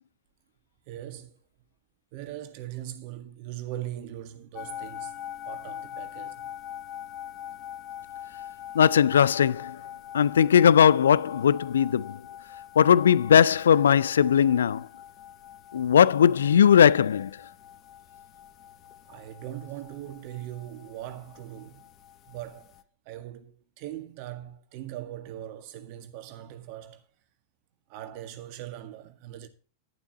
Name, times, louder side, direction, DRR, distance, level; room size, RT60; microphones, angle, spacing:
voice 1, 0.9-1.4 2.1-5.2 5.5-6.5 19.1-21.9 22.3-22.7 23.1-27.0 27.9-29.5, right 13 dB, 45° right, 1.7 m, -40 dB
sound 1, 4.5-22.8, left 10 dB, 30° left, 1.2 m, -43 dB
voice 2, 8.7-9.8 10.1-12.2 12.8-14.9 15.7-17.3, left 8 dB, 65° left, 0.4 m, -19 dB
11.5 x 11.5 x 2.9 m
figure-of-eight pair, 90°, 0 cm